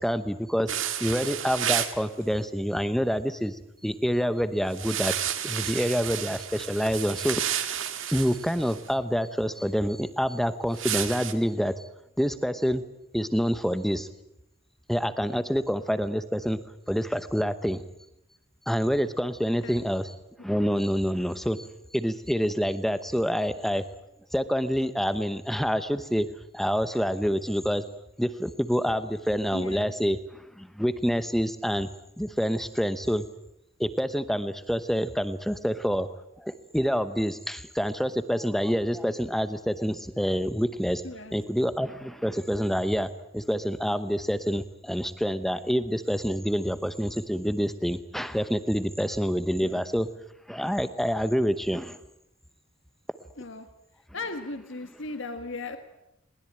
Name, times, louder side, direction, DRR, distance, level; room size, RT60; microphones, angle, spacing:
voice 1, 0.0-3.6 3.8-5.1 5.4-7.4 8.1-11.9 12.2-12.8 13.1-14.1 14.9-16.6 16.9-17.8 18.7-20.1 20.4-21.7 21.9-23.8 24.3-26.3 26.5-27.8 28.2-31.9 32.2-33.2 33.8-41.0 41.3-50.1 50.5-52.0, equal, ahead, 11 dB, 0.9 m, -27 dB
sound 1, 0.7-2.0 4.7-8.8 10.7-11.3, right 10 dB, 65° right, 1.8 m, -31 dB
voice 2, 29.5-29.9 41.0-41.4 49.6-49.8 53.4-53.7 54.1-55.8, left 3 dB, 60° left, 7 dB, 1.7 m, -37 dB
21.5 x 20.0 x 8.9 m, 0.85 s
head